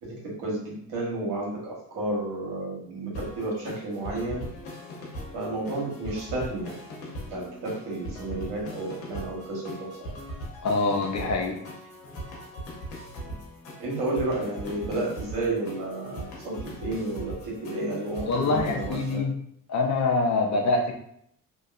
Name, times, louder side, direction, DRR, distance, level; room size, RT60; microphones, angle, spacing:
voice 1, 0.0-4.5 5.3-6.7 7.3-9.9 13.2-13.3 13.8-16.5 16.8-19.3, right 2 dB, 80° right, -4 dB, 1.3 m, -31 dB
sound 1, 3.1-19.1, equal, 90° left, 0.8 m, -40 dB
voice 2, 10.6-11.6 18.3-19.3 19.7-20.9, left 3 dB, 45° left, 2 dB, 0.6 m, -25 dB
2.8 x 2.2 x 2.4 m, 0.71 s
supercardioid pair, 60°, 40 cm